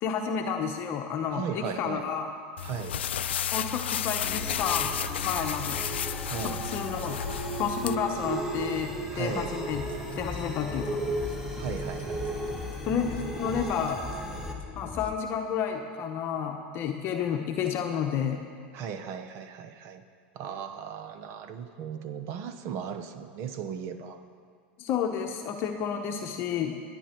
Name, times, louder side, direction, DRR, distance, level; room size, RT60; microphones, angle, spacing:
voice 1, 0.0-2.3 3.5-4.9 5.2-5.8 6.4-7.2 7.5-9.8 10.2-11.0 12.8-14.0 14.8-18.4 24.8-26.8, left 7 dB, 40° left, 3 dB, 0.9 m, -30 dB
voice 2, 1.3-2.0 2.6-3.0 6.2-6.6 9.1-9.5 11.6-12.4 18.7-20.0 20.3-24.2, right 7 dB, 50° right, 10 dB, 0.9 m, -37 dB
sound 1, 2.6-7.9, left 9 dB, 90° left, 0.4 m, -32 dB
sound 2, 4.2-14.5, right 1 dB, 5° right, 1.9 m, -36 dB
sound 3, 9.7-15.2, left 5 dB, 20° left, 0.8 m, -41 dB
17.5 x 10.0 x 4.5 m, 2.1 s
hypercardioid pair, 115°, 6 cm